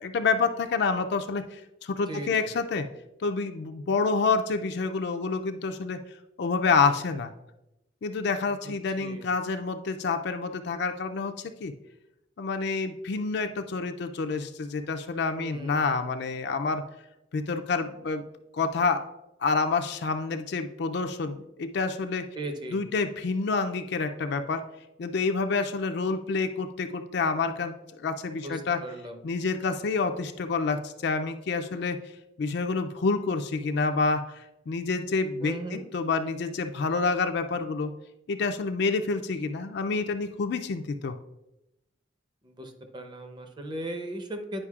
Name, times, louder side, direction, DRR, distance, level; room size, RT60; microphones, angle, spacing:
voice 1, 0.0-2.9 3.2-6.0 6.4-7.3 8.0-11.7 12.4-16.8 17.3-18.2 18.5-19.0 19.4-22.3 22.7-24.6 25.0-28.8 29.2-32.0 32.4-37.9 38.3-41.2, left 4 dB, 60° left, 7 dB, 0.4 m, -28 dB
voice 2, 2.1-2.5 8.5-8.7 9.0-9.3 15.3-16.0 22.3-22.8 28.3-29.2 35.4-35.8 42.4-44.7, right 1 dB, 25° right, 5 dB, 0.7 m, -38 dB
9.8 x 5.1 x 2.4 m, 0.92 s
head